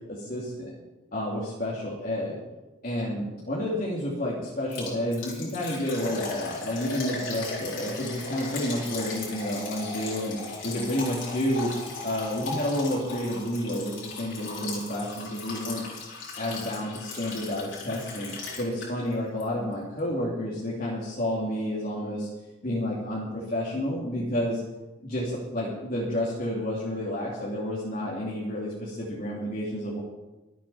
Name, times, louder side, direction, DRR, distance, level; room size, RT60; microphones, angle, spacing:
voice 1, 0.1-0.7 1.1-2.4 2.8-11.7 12.0-15.8 16.4-22.3 22.6-24.6 25.0-30.0, left 1 dB, 45° left, -6 dB, 3.0 m, -30 dB
Liquid, 4.7-19.1 19.4-19.5 20.0-20.1, left 3 dB, 75° left, 5.2 m, -37 dB
24.5 x 9.2 x 4.4 m, 1.1 s
head